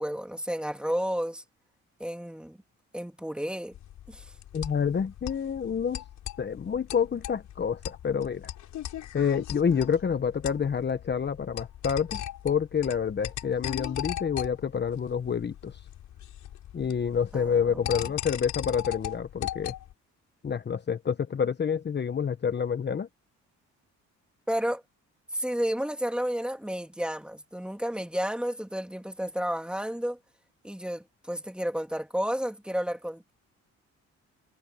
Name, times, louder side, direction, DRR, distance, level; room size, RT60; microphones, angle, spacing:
voice 1, 0.0-1.4 2.0-2.6 2.9-3.7 4.1-4.3 17.3-18.0 24.5-24.8 25.3-30.2 30.6-33.3, equal, 5° right, 3.1 m, -31 dB
sound 1, 3.7-19.9, left 11 dB, 75° left, 7.8 m, -39 dB
voice 2, 4.5-6.0 6.4-8.5 9.1-15.8 16.7-19.7 20.4-23.1, left 7 dB, 35° left, 1.1 m, -28 dB
cardioid pair, 90°, 30 cm